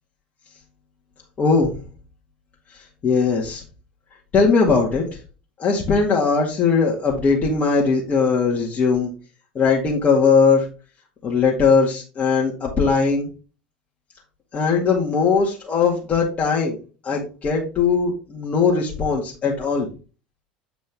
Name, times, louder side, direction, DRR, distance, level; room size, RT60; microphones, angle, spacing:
voice 1, 1.4-1.8 2.7-3.6 4.3-5.2 5.6-9.1 9.6-10.7 11.2-13.3 14.5-16.8 17.0-19.9, left 5 dB, 35° left, -2 dB, 2.0 m, -19 dB
8.0 x 5.1 x 3.5 m, 0.34 s
hypercardioid pair, 75°, 4 cm